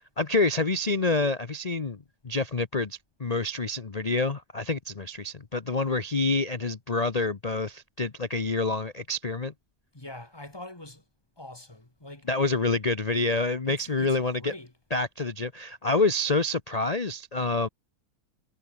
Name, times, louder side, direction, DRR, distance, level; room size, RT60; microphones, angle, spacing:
voice 1, 0.2-9.5 12.3-14.5 14.9-17.7, left 3 dB, 45° left, 0.4 m, -27 dB
voice 2, 9.9-11.0 11.4-12.3 13.6-14.8, left 1 dB, 10° left, 2.3 m, -44 dB
omnidirectional pair, 2.2 m